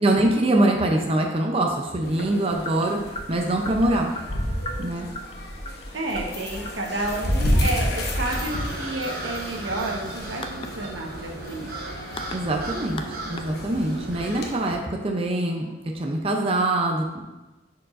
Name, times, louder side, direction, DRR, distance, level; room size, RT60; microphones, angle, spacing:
voice 1, 0.0-3.0 3.3-4.1 4.8-5.1 12.3-15.6 15.9-17.2, right 1 dB, 30° right, 1 dB, 0.5 m, -23 dB
sound 1, 2.0-14.7, equal, 55° left, 1.0 m, -31 dB
sound 2, 2.6-14.1, left 2 dB, 30° left, 0.4 m, -41 dB
voice 2, 5.9-11.7, right 2 dB, 85° right, 0 dB, 1.2 m, -30 dB
sound 3, 8.2-14.4, right 2 dB, 50° right, 0.9 m, -36 dB
10.5 x 4.6 x 2.5 m, 1.1 s
head